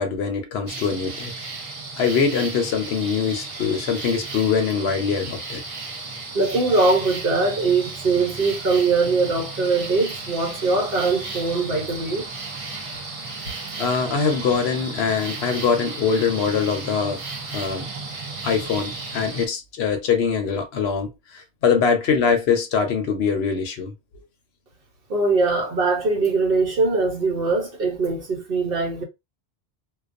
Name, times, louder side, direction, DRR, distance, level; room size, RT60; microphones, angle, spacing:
voice 1, 0.0-1.3 2.0-5.6 13.8-17.2 17.5-17.9 18.4-23.9, left 6 dB, 70° left, 0.8 m, -23 dB
sound 1, 0.7-19.5, right 3 dB, 40° right, 0.5 m, -34 dB
voice 2, 6.3-12.3 25.1-29.0, right 3 dB, 60° right, 1.0 m, -21 dB
2.3 x 2.2 x 2.4 m
omnidirectional pair, 1.1 m